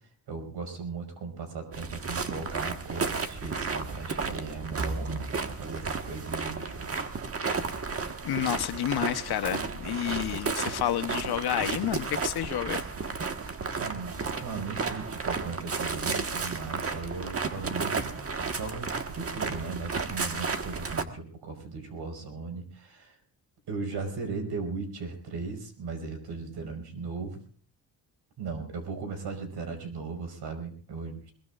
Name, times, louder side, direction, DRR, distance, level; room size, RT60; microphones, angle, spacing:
voice 1, 0.3-6.9 13.3-23.2 23.7-27.4 28.4-31.3, right 4 dB, 70° right, 5.3 m, -37 dB
sound 1, 1.7-21.0, right 4 dB, 35° right, 1.5 m, -33 dB
voice 2, 8.2-12.8, left 12 dB, 65° left, 1.0 m, -30 dB
22.0 x 21.5 x 2.5 m
cardioid pair, 110°, 41 cm